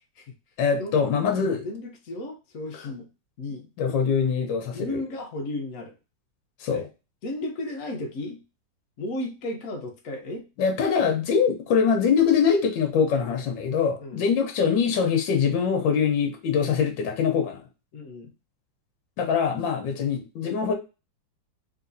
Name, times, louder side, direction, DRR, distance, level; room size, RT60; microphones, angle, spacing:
voice 1, 0.6-1.6 3.8-5.0 6.6-6.9 10.6-17.6 19.2-20.7, left 6 dB, 80° left, 4 dB, 1.5 m, -23 dB
voice 2, 1.3-3.1 3.4-3.7 4.7-5.9 6.7-6.9 7.2-8.4 9.0-10.5 14.0-14.2 17.9-18.3, left 1 dB, 55° left, 3 dB, 1.1 m, -34 dB
3.9 x 2.9 x 2.6 m, 0.29 s
omnidirectional pair, 2.0 m